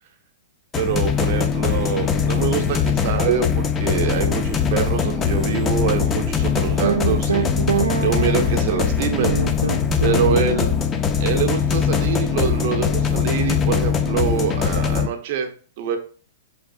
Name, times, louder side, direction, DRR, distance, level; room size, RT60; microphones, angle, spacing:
sound 1, 0.7-15.1, left 7 dB, 25° left, 0.4 m, -21 dB
voice 1, 0.8-9.4 10.0-10.7 11.2-15.5 15.8-16.0, right 7 dB, 55° right, 4 dB, 0.8 m, -25 dB
sound 2, 6.8-8.6 9.2-10.7, right 6 dB, 90° right, 0.8 m, -24 dB
3.9 x 3.6 x 2.6 m, 0.40 s
hypercardioid pair, 120°, 0 cm